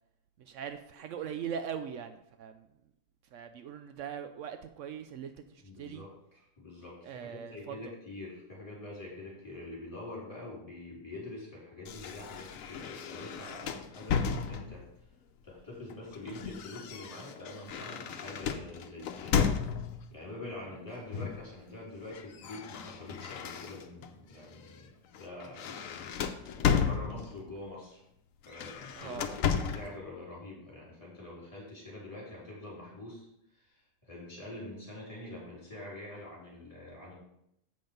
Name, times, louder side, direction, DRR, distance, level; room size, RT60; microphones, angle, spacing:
voice 1, 0.4-2.7 3.3-6.0 7.0-7.8 29.0-29.3, right 8 dB, 75° right, 9 dB, 0.9 m, -41 dB
voice 2, 5.6-14.9 15.4-19.4 20.1-24.9 25.2-26.1 26.8-28.0 28.5-33.3 33.5-37.1, left 2 dB, 25° left, -6 dB, 3.6 m, -45 dB
sound 1, 11.9-15.0 15.9-20.1 21.1-21.5 21.8-24.1 24.6-24.8 25.1-27.5 28.4-30.0, left 7 dB, 90° left, 1.1 m, -34 dB
7.7 x 5.8 x 5.2 m, 0.80 s
omnidirectional pair, 1.4 m